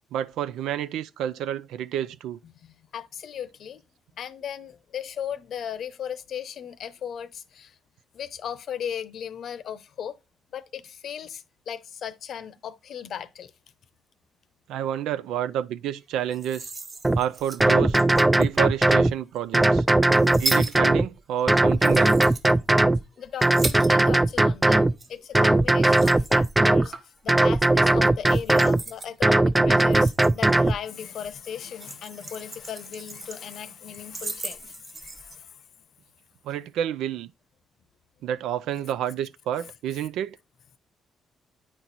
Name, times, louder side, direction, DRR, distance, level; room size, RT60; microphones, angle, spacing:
voice 1, 0.1-2.4 14.7-16.7 17.2-18.0 18.4-19.8 20.4-22.2 36.5-37.3 38.2-40.4, right 10 dB, 85° right, 0.4 m, -29 dB
voice 2, 2.4-3.8 4.2-7.7 8.1-10.2 10.5-13.5 20.1-20.3 23.2-26.9 27.2-35.5 39.6-39.7, left 8 dB, 65° left, 0.7 m, -37 dB
sound 1, 16.2-18.7 19.4-24.4 24.6-27.2 27.5-27.8 28.3-29.1 29.7-31.0 31.2-33.6 33.9-35.4, right 3 dB, 35° right, 1.2 m, -37 dB
sound 2, 17.0-17.2 17.6-19.1 19.5-21.1 21.5-23.0 23.4-24.9 25.3-26.9 27.3-28.8 29.2-30.8, right 2 dB, 10° right, 0.3 m, -19 dB
9.0 x 4.4 x 4.0 m
cardioid pair, 90°, 0 cm